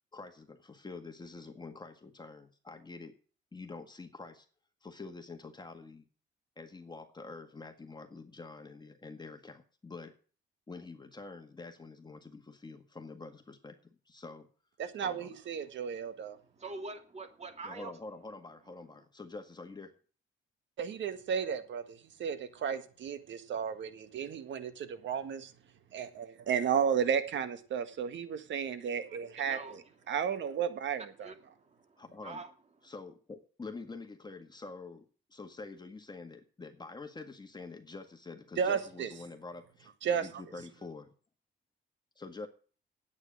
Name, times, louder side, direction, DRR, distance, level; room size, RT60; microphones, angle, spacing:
voice 1, 0.1-3.1 3.5-4.5 4.8-6.0 6.6-10.1 10.7-14.5 15.0-15.4 17.6-19.9 32.0-32.4 32.8-41.1 42.2-42.5, left 3 dB, 20° left, 5 dB, 1.8 m, -46 dB
voice 2, 14.8-16.4 20.8-25.5 25.9-29.8 30.1-31.3 38.6-39.1 40.0-40.3, right 7 dB, 70° right, 11 dB, 1.8 m, -33 dB
voice 3, 16.6-17.9 29.1-29.8 31.2-32.5, right 3 dB, 35° right, 5 dB, 2.7 m, -45 dB
9.6 x 8.9 x 7.6 m, 0.40 s
cardioid pair, 90°, 20 cm